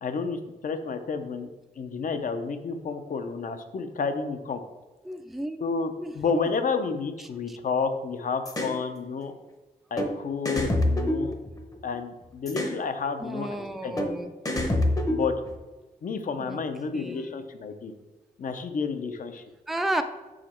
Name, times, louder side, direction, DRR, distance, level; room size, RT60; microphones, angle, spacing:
voice 1, 0.0-1.5 1.8-4.6 5.6-9.3 9.9-11.4 11.8-14.0 15.1-15.3 16.0-17.9 18.4-19.4, left 5 dB, 60° left, 8 dB, 0.6 m, -30 dB
voice 2, 5.0-5.6 6.0-6.1 7.5-7.6 13.2-14.3 16.4-16.6 16.9-17.3 19.7-20.0, right 1 dB, ahead, 7 dB, 0.3 m, -32 dB
sound 1, 8.4-8.8 10.0-10.1 10.4-11.9 12.5-12.8 14.0-14.1 14.4-15.5, left 1 dB, 25° left, 0.7 m, -26 dB
5.9 x 5.0 x 4.3 m, 1.2 s
wide cardioid pair, 165°, 15 cm